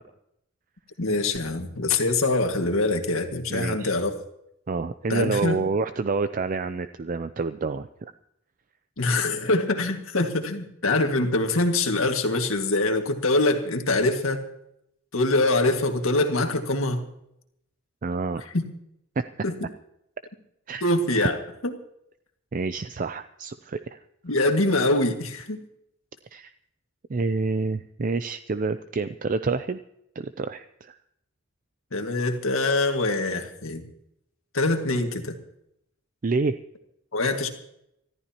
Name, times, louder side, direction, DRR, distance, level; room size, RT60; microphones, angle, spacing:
voice 1, 1.0-4.1 5.1-5.6 9.0-14.4 15.1-17.1 18.5-18.6 19.4-19.5 20.8-21.4 21.6-21.7 24.3-25.6 31.9-33.8 34.5-35.4 37.1-37.5, left 2 dB, 85° left, 5 dB, 1.9 m, -24 dB
voice 2, 3.5-3.9 4.7-8.1 18.0-18.4 20.7-20.8 22.5-24.0 26.3-26.5 27.1-29.8 30.2-31.0 36.2-36.5, right 4 dB, 40° right, 11 dB, 0.4 m, -28 dB
25.0 x 14.0 x 2.9 m, 0.78 s
head